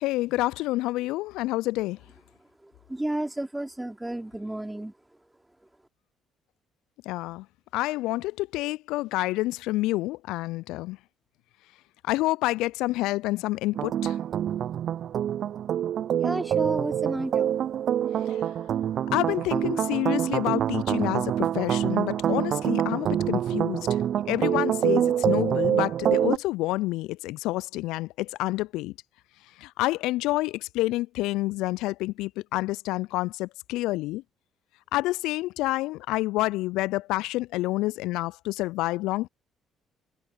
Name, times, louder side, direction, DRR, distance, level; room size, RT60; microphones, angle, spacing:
voice 1, 0.0-2.0 7.0-7.5 7.7-11.0 12.0-14.2 18.1-18.5 19.1-28.9 29.4-34.2 34.9-39.3, left 18 dB, 70° left, 0.5 m, -28 dB
voice 2, 2.6-4.9 16.2-17.6, right 1 dB, 10° right, 3.2 m, -32 dB
sound 1, 13.7-26.4, right 10 dB, 55° right, 0.6 m, -26 dB
figure-of-eight pair, 50°, 0 cm